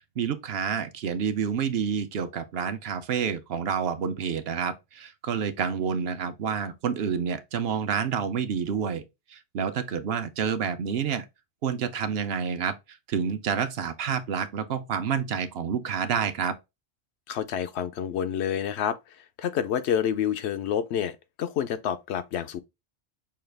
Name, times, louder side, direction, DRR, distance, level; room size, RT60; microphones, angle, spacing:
voice 1, 0.2-9.0 9.3-11.3 11.6-12.7 13.1-16.5, right 7 dB, 70° right, 0.8 m, -28 dB
voice 2, 17.3-22.6, left 9 dB, 85° left, 0.8 m, -28 dB
5.6 x 2.3 x 3.2 m
omnidirectional pair, 1.1 m